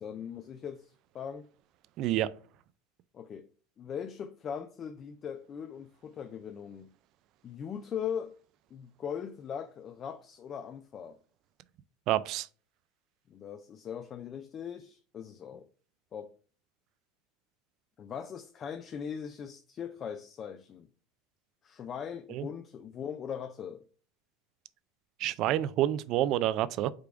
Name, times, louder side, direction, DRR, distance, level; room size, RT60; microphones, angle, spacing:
voice 1, 0.0-1.5 3.1-3.5 3.8-6.9 7.4-8.4 8.7-11.2 13.3-15.7 16.1-16.3 18.0-20.9 21.6-23.8, left 8 dB, 35° left, 0.3 m, -40 dB
voice 2, 2.0-2.3 12.1-12.5 22.3-22.5 25.2-26.9, right 13 dB, 55° right, 0.3 m, -28 dB
5.0 x 2.3 x 4.6 m
supercardioid pair, 120°, 0 cm